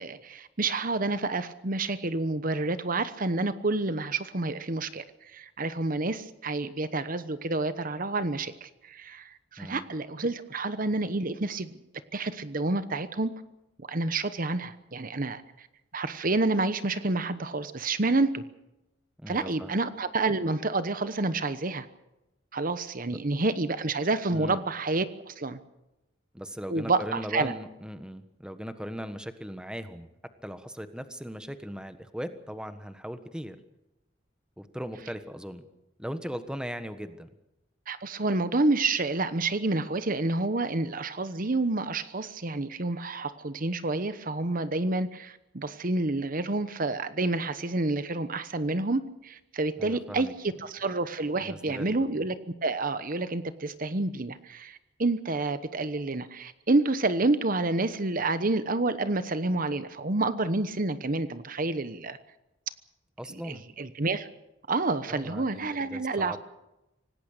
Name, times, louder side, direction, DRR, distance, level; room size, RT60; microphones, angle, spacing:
voice 1, 0.0-11.8 12.1-13.3 13.8-15.7 15.9-18.4 19.3-21.9 22.5-25.6 26.7-27.5 34.9-35.1 37.9-62.2 63.3-64.3 64.7-66.4, right 2 dB, 45° right, 12 dB, 1.0 m, -29 dB
voice 2, 19.2-19.8 23.1-23.2 24.3-24.6 26.3-30.1 30.4-33.6 34.6-35.7 36.0-37.3 49.8-50.3 51.4-52.1 63.2-63.6 65.1-66.4, equal, 5° right, 10 dB, 1.4 m, -38 dB
26.0 x 18.5 x 6.7 m, 0.93 s
head